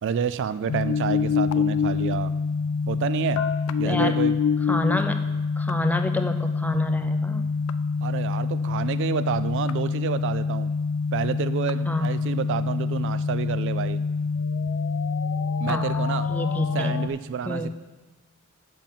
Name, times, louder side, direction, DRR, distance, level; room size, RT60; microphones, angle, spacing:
voice 1, 0.0-2.3 2.9-3.4 3.8-4.4 8.0-10.7 11.1-14.0 15.6-16.3 16.7-17.7, right 7 dB, 60° right, 14 dB, 0.3 m, -29 dB
sound 1, 0.7-17.1, left 5 dB, 85° left, 0.4 m, -26 dB
voice 2, 4.7-5.2 5.6-7.5 11.9-12.1 15.7-17.0 17.5-17.7, left 1 dB, 10° left, 6 dB, 0.5 m, -28 dB
7.3 x 5.4 x 7.3 m, 1.2 s
head